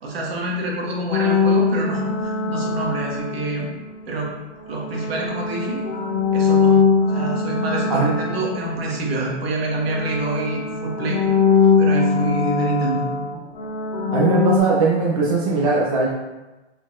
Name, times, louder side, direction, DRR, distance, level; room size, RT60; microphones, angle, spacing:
voice 1, 0.0-3.7 4.1-4.3 4.7-5.9 6.3-6.7 7.0-11.2 11.8-13.0, right 2 dB, 60° right, -2 dB, 1.2 m, -26 dB
sound 1, 1.1-4.0 4.7-9.5 9.7-14.6, left 5 dB, 50° left, 0.5 m, -21 dB
voice 2, 14.1-16.1, right 4 dB, 30° right, -5 dB, 0.4 m, -19 dB
4.2 x 3.9 x 2.4 m, 1.1 s
hypercardioid pair, 165°, 35 cm